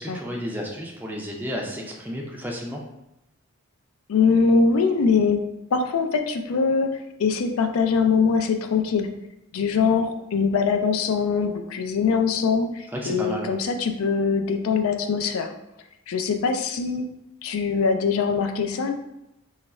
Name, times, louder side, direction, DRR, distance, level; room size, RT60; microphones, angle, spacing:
voice 1, 0.0-2.8 12.9-13.5, equal, 10° right, -1 dB, 0.4 m, -32 dB
voice 2, 4.1-5.4 5.7-9.1 9.5-15.5 16.1-17.1 17.4-18.9, left 5 dB, 70° left, 6 dB, 0.4 m, -22 dB
3.0 x 2.4 x 4.1 m, 0.88 s
head